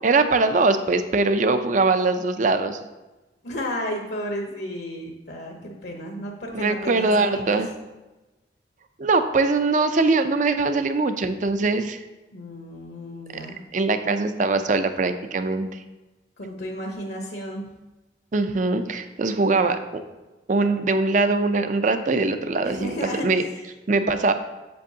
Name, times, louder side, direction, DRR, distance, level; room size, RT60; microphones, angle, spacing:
voice 1, 0.0-2.8 6.5-7.7 9.0-12.0 13.7-15.8 18.3-20.0 20.5-23.4 23.9-24.3, right 3 dB, 45° right, 9 dB, 0.5 m, -22 dB
voice 2, 3.4-7.6 12.3-13.6 16.4-17.6 22.6-23.5, equal, 65° left, 1 dB, 0.9 m, -33 dB
7.7 x 7.3 x 2.8 m, 1.1 s
head